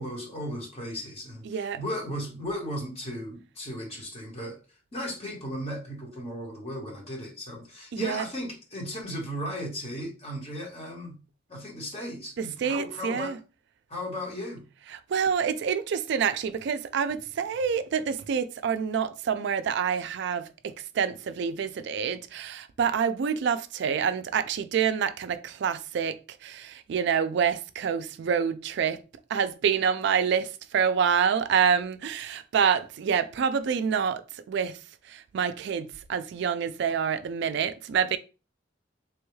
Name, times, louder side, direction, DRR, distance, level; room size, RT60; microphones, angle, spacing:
voice 1, 0.0-4.6 4.9-11.2 11.5-13.3 13.9-14.6, equal, 35° left, 1.1 m, -36 dB
voice 2, 1.4-1.8 7.9-8.3 12.4-13.4 14.9-29.0 29.3-34.8 35.0-38.2, right 7 dB, 65° right, 0.3 m, -27 dB
3.4 x 2.3 x 3.1 m
head